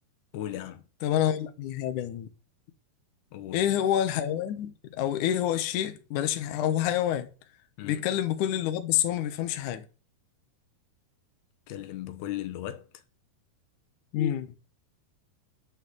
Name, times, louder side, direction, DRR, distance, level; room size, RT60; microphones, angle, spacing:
voice 1, 0.3-0.8 3.3-3.6 7.8-8.0 11.7-12.9, left 12 dB, 90° left, 3.2 m, -36 dB
voice 2, 1.0-2.3 3.5-7.3 7.8-9.8 14.1-14.5, left 11 dB, 65° left, 2.3 m, -27 dB
10.0 x 6.4 x 7.8 m
omnidirectional pair, 4.5 m